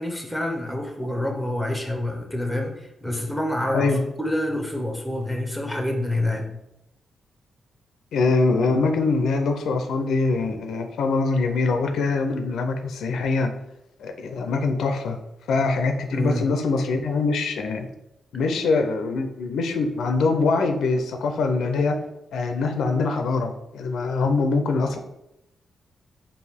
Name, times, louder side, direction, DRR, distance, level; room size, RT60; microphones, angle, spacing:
voice 1, 0.0-3.9 4.2-6.5 16.1-16.5, left 1 dB, ahead, 2 dB, 0.7 m, -27 dB
voice 2, 3.7-4.1 8.1-13.5 14.0-15.2 15.5-17.9 18.3-22.0 22.3-25.0, left 3 dB, 85° left, 6 dB, 0.5 m, -23 dB
4.5 x 2.6 x 3.4 m, 0.85 s
wide cardioid pair, 135°, 0 cm